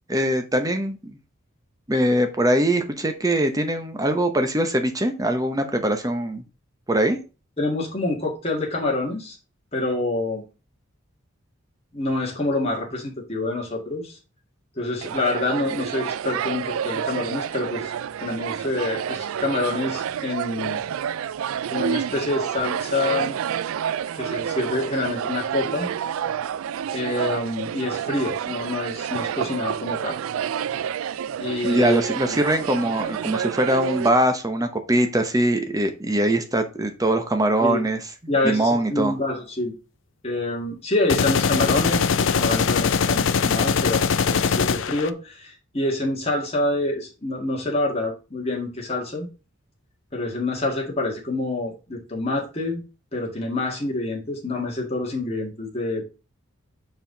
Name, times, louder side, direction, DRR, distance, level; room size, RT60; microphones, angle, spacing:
voice 1, 0.1-1.2 1.9-6.4 6.9-7.2 31.6-39.2, right 1 dB, 15° right, 0.8 m, -22 dB
voice 2, 7.6-9.4 9.7-10.4 11.9-14.2 14.8-17.9 18.2-20.8 21.7-23.4 24.1-25.9 26.9-30.2 31.4-32.0 32.3-32.4 37.6-37.8 38.3-39.7 40.2-49.3 50.1-52.8 53.1-56.0, left 2 dB, 30° left, 2.0 m, -27 dB
sound 1, 15.0-34.1, right 8 dB, 80° right, 0.3 m, -29 dB
sound 2, 41.1-45.1, left 6 dB, 60° left, 0.5 m, -21 dB
5.6 x 4.7 x 3.9 m
head